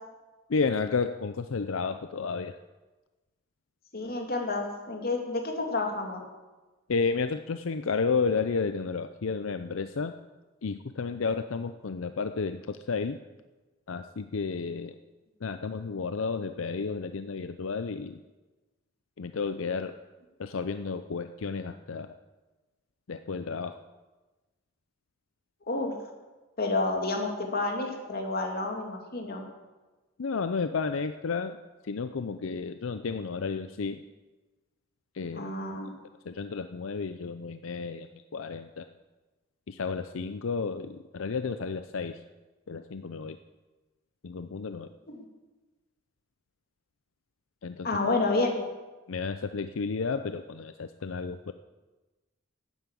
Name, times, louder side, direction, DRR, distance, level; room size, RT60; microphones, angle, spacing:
voice 1, 0.5-2.6 6.9-10.1 10.6-13.2 13.9-14.9 15.4-18.2 19.2-19.9 20.4-22.1 23.1-23.8 30.2-31.6 31.8-34.0 35.1-35.5 36.3-38.9 39.7-42.2 42.7-43.4 44.2-44.9 47.6-48.0 49.1-51.5, left 4 dB, 85° left, 10 dB, 0.6 m, -32 dB
voice 2, 3.9-6.2 25.7-25.9 26.6-29.4 35.3-35.9 45.1-45.2 47.8-48.7, left 2 dB, 50° left, 2 dB, 2.6 m, -30 dB
12.0 x 9.6 x 8.4 m, 1.2 s
head